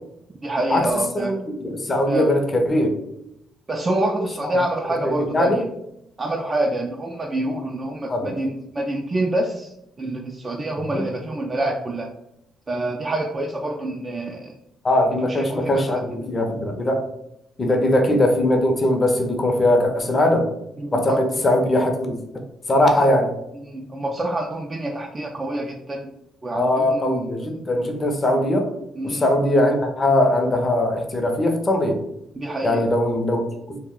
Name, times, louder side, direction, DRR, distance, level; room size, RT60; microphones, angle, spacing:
voice 1, 0.4-1.4 2.1-2.3 3.7-5.6 6.2-12.1 12.7-14.6 15.1-16.3 17.7-17.8 20.8-21.2 23.0-23.1 23.5-26.1 26.4-27.5 29.0-29.3 32.4-32.9, right 1 dB, 30° right, 1 dB, 0.3 m, -27 dB
voice 2, 1.1-3.0 4.4-4.5 5.0-5.6 8.1-8.4 10.9-11.0 14.8-17.1 17.6-20.5 20.9-22.4 22.7-23.3 26.5-28.7 29.0-32.0 32.6-33.8, left 1 dB, 30° left, 4 dB, 0.5 m, -20 dB
2.3 x 2.0 x 3.6 m, 0.81 s
cardioid pair, 90°, 0 cm